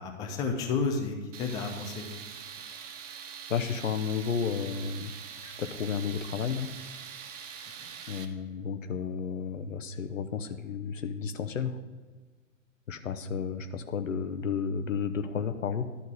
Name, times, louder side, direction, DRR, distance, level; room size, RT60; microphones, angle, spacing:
voice 1, 0.0-2.1 7.8-7.9, left 4 dB, 10° left, 2 dB, 0.5 m, -31 dB
Tools, 1.3-8.2, right 7 dB, 30° right, 0.6 m, -44 dB
voice 2, 3.5-5.1 5.4-6.7 8.1-11.8 12.9-16.0, left 6 dB, 75° left, 9 dB, 0.9 m, -32 dB
11.0 x 3.9 x 6.2 m, 1.4 s
figure-of-eight pair, 120°, 39 cm